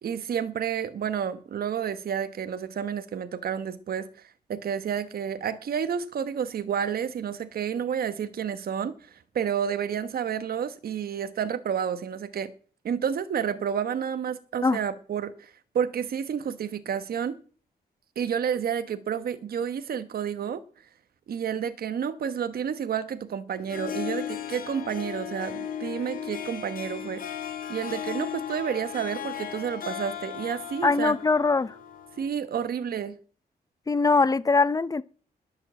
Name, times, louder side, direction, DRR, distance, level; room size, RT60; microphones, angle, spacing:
voice 1, 0.0-12.5 12.8-17.4 18.2-20.6 21.3-27.2 27.7-31.2 32.2-33.2, right 8 dB, 70° right, 1.1 m, -30 dB
Harp, 23.5-32.3, left 9 dB, 60° left, 3.1 m, -36 dB
voice 2, 30.8-31.7 33.9-35.0, left 4 dB, 20° left, 0.6 m, -22 dB
20.5 x 7.2 x 7.5 m
wide cardioid pair, 155°, 16 cm